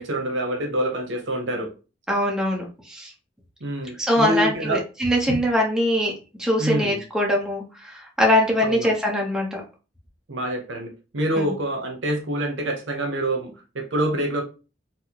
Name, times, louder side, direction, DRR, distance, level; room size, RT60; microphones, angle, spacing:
voice 1, 0.0-1.7 3.6-4.8 6.6-7.0 8.6-8.9 10.3-14.4, right 1 dB, 70° right, 3 dB, 0.8 m, -26 dB
voice 2, 2.1-3.1 4.0-6.1 6.4-9.6 11.4-11.5, equal, 5° right, -2 dB, 0.8 m, -22 dB
4.1 x 2.0 x 2.8 m, 0.33 s
head